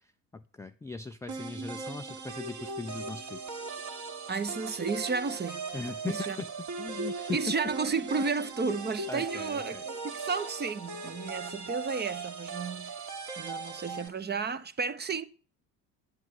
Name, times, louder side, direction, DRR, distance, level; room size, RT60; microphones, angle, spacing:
voice 1, 0.0-3.5 5.7-6.5 6.8-7.5 9.1-9.8, left 4 dB, 5° left, 0.5 m, -39 dB
sound 1, 1.3-14.1, right 4 dB, 40° right, 2.2 m, -39 dB
voice 2, 4.3-5.7 6.0-6.4 7.3-13.0 13.4-15.2, right 5 dB, 20° right, 0.9 m, -32 dB
10.5 x 8.1 x 5.6 m
figure-of-eight pair, 55°, 47 cm